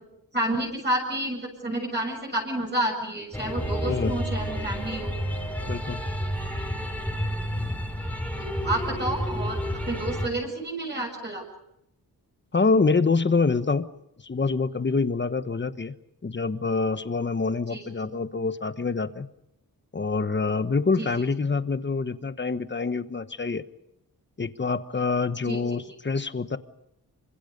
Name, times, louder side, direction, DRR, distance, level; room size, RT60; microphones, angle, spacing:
voice 1, 0.3-5.1 8.4-9.6 9.8-11.4 17.7-17.8 21.0-21.1 25.4-25.6, right 1 dB, 30° right, -1 dB, 7.3 m, -29 dB
sound 1, 3.3-10.3, equal, 5° left, 5.0 m, -30 dB
voice 2, 3.9-4.2 5.7-6.0 12.5-13.9 14.2-15.9 16.2-19.3 19.9-23.6 24.4-26.6, left 4 dB, 30° left, 11 dB, 1.3 m, -26 dB
27.5 x 25.5 x 5.4 m, 0.80 s
wide cardioid pair, 115°, 37 cm